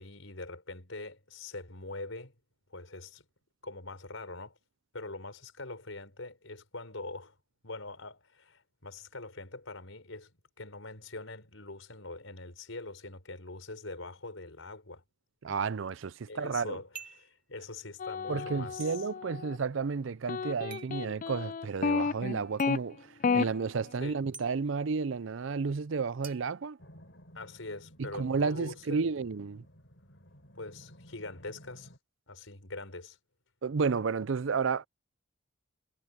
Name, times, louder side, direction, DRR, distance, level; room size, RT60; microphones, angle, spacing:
voice 1, 0.0-2.3 2.7-3.2 3.6-4.6 4.9-7.4 7.6-10.3 10.6-15.0 16.3-19.1 24.0-24.2 27.3-29.1 30.5-31.9 32.3-33.2, left 2 dB, 80° left, 4.9 m, -43 dB
voice 2, 15.4-16.8 18.3-26.8 28.0-29.7 33.6-34.9, right 5 dB, 75° right, 0.5 m, -32 dB
sound 1, 16.9-17.3 18.8-18.9 20.7-21.0 22.6-22.7 24.3-24.5 26.2-27.3, right 6 dB, 45° right, 5.6 m, -48 dB
sound 2, 18.0-19.6 20.3-22.8 23.2-23.5, left 5 dB, 40° left, 0.3 m, -31 dB
sound 3, 26.8-32.0, equal, 65° left, 5.4 m, -56 dB
head